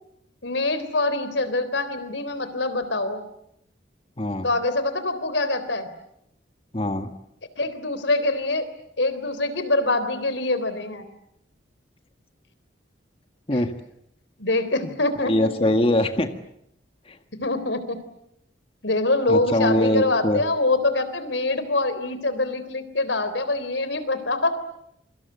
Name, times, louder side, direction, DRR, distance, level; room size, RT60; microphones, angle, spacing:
voice 1, 0.4-3.2 4.4-5.9 7.6-8.7 9.0-11.0 14.4-15.5 17.4-18.0 18.8-24.6, left 2 dB, 80° left, 12 dB, 3.7 m, -24 dB
voice 2, 4.2-4.5 6.7-7.1 13.5-13.7 14.8-14.9 15.2-16.3 17.1-17.2 19.3-20.4, left 1 dB, 30° left, 7 dB, 1.7 m, -22 dB
28.0 x 25.0 x 8.2 m, 0.76 s
head